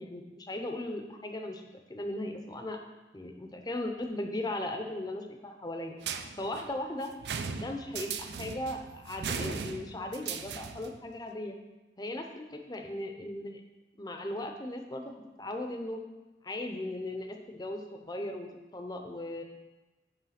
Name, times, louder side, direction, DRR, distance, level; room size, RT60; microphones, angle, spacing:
voice 1, 0.0-1.6 1.9-2.8 3.1-5.9 6.4-7.1 7.5-11.6 12.0-13.6 14.0-16.0 16.4-19.4, left 1 dB, 25° left, 4 dB, 0.7 m, -37 dB
sound 1, 6.0-11.0, right 6 dB, 70° right, 0.5 m, -38 dB
9.1 x 3.3 x 5.8 m, 1.1 s
head